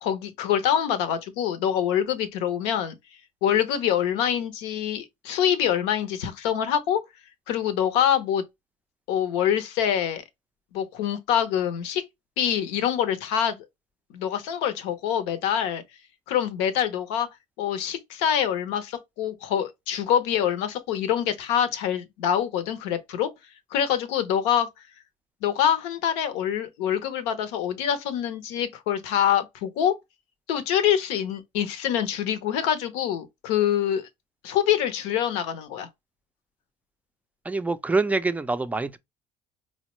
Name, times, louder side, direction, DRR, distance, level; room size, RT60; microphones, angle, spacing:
voice 1, 0.0-2.9 3.4-7.0 7.5-8.4 9.1-10.2 10.7-12.0 12.4-13.6 14.1-15.8 16.3-17.3 17.6-23.3 23.7-24.7 25.4-29.9 30.5-34.0 34.4-35.9, left 9 dB, 80° left, 0.7 m, -25 dB
voice 2, 37.4-39.0, right 3 dB, 10° right, 0.4 m, -25 dB
4.1 x 2.1 x 2.9 m
supercardioid pair, 85°, 17 cm